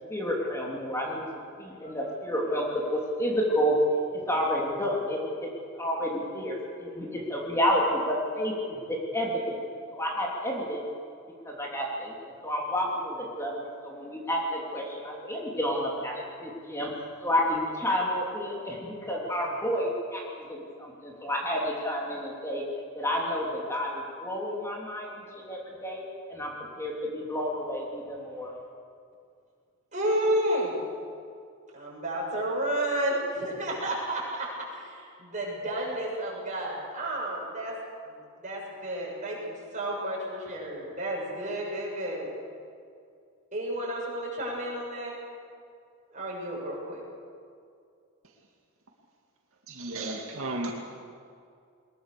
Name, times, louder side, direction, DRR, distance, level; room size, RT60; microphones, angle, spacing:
voice 1, 0.1-1.2 1.6-3.8 4.1-5.5 5.7-9.6 9.9-10.8 11.4-22.6 22.9-26.0 26.3-26.5 26.8-28.5, equal, 10° left, -3 dB, 3.2 m, -30 dB
voice 2, 29.9-30.8 31.7-37.7 38.1-42.3 43.5-45.1 46.1-47.0, right 1 dB, 35° right, -3 dB, 7.3 m, -31 dB
voice 3, 49.7-50.7, right 2 dB, 70° right, 0 dB, 2.5 m, -33 dB
22.0 x 21.0 x 6.9 m, 2.3 s
head